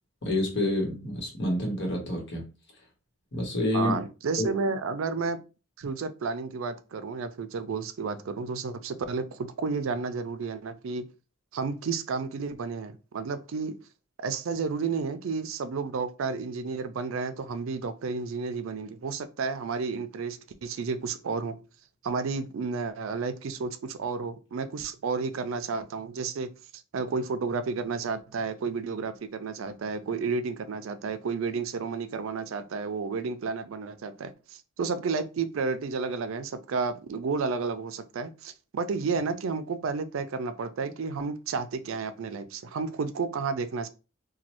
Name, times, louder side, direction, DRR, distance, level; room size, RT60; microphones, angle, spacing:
voice 1, 0.2-2.5 3.3-3.9 4.4-4.5, left 1 dB, 60° left, 1.1 m, -28 dB
voice 2, 3.7-5.4 5.8-11.0 11.5-13.8 14.2-21.6 22.0-26.5 26.9-43.9, right 4 dB, 80° right, 0.4 m, -31 dB
3.1 x 2.2 x 2.9 m
head